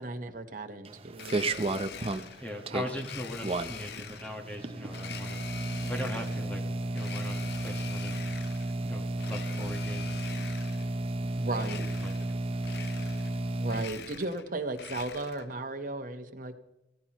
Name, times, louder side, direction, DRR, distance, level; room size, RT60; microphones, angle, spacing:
voice 1, 0.0-1.8 2.7-2.9 11.4-11.8 13.6-16.5, right 2 dB, 50° right, 6 dB, 1.1 m, -36 dB
sound 1, 0.8-13.9, right 2 dB, 35° right, 0.6 m, -33 dB
Domestic sounds home sounds, 1.1-2.5 3.0-4.4 4.9-6.5 6.9-8.7 9.1-10.9 11.5-12.3 12.6-13.4 13.6-15.5, left 8 dB, 65° left, 0.6 m, -44 dB
voice 2, 2.4-5.4 5.8-6.6 6.9-8.2 8.8-10.2 11.7-11.8 12.0-12.3, left 1 dB, 10° left, 0 dB, 1.4 m, -40 dB
16.0 x 14.0 x 3.0 m, 0.96 s
head